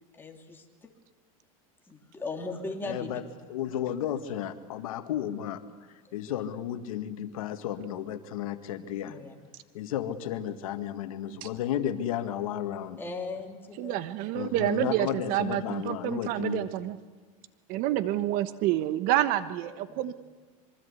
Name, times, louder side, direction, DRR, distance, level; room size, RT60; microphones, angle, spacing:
voice 1, 0.1-0.9 1.9-3.2 6.0-6.1 9.0-9.3 13.0-14.0 19.9-20.1, left 3 dB, 10° left, 2 dB, 3.0 m, -38 dB
voice 2, 2.8-5.6 5.9-9.2 9.7-13.0 14.3-16.6, left 10 dB, 85° left, 8 dB, 1.8 m, -33 dB
voice 3, 13.8-17.0 17.7-20.1, right 13 dB, 55° right, 13 dB, 1.2 m, -28 dB
26.0 x 23.5 x 8.3 m, 1.4 s
supercardioid pair, 135°, 18 cm